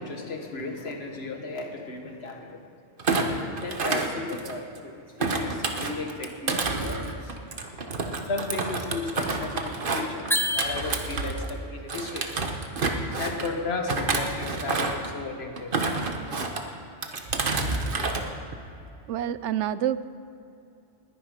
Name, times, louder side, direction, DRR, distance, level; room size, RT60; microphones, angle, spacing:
voice 1, 0.0-2.6 3.5-4.9 5.2-7.3 8.3-10.3 10.5-12.3 13.2-15.7, left 3 dB, 60° left, 3 dB, 1.7 m, -34 dB
Thump thud, 3.0-4.8 5.2-11.6 11.9-13.5 13.9-15.1 15.6-16.6 17.0-18.2 18.5-18.9, right 3 dB, 50° right, 1.3 m, -29 dB
sound 1, 10.3-11.4, left 1 dB, 5° left, 0.5 m, -28 dB
voice 2, 19.1-20.0, right 10 dB, 85° right, 15 dB, 0.9 m, -27 dB
20.5 x 10.0 x 5.0 m, 2.6 s
omnidirectional pair, 1.2 m